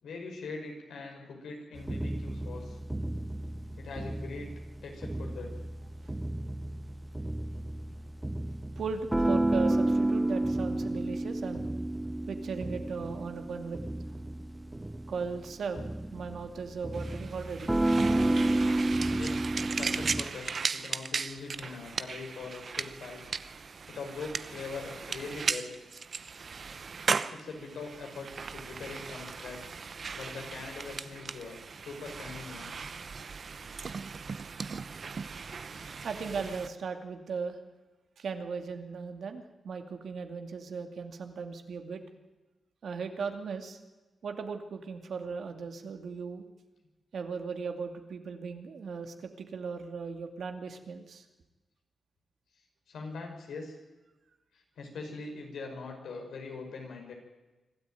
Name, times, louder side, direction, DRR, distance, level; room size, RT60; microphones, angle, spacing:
voice 1, 0.0-2.8 3.8-4.5 4.8-5.6 19.1-23.3 23.9-25.7 27.3-29.7 30.1-32.7 52.9-53.8 54.5-57.1, left 4 dB, 90° left, 2 dB, 5.6 m, -42 dB
sound 1, 1.8-20.2, right 1 dB, 15° right, 0.7 m, -31 dB
voice 2, 8.8-11.7 12.3-13.8 15.1-17.7 36.0-37.6 38.2-42.0 42.8-43.8 44.2-46.4 47.1-51.3, right 5 dB, 70° right, 6 dB, 2.4 m, -37 dB
sound 2, 16.9-36.7, right 5 dB, 55° right, 0.9 m, -37 dB
25.5 x 13.0 x 9.2 m, 1.1 s
cardioid pair, 75°, 0 cm